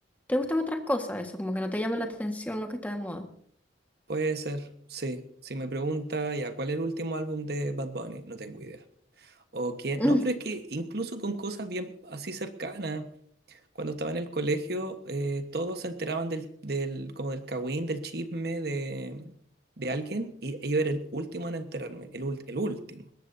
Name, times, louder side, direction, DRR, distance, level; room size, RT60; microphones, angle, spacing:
voice 1, 0.3-3.3 10.0-10.2, left 1 dB, 10° left, 4 dB, 1.6 m, -29 dB
voice 2, 4.1-8.8 9.2-13.1 13.5-19.3 19.8-23.1, right 2 dB, 55° right, 8 dB, 1.3 m, -32 dB
21.0 x 18.0 x 2.7 m, 0.62 s
head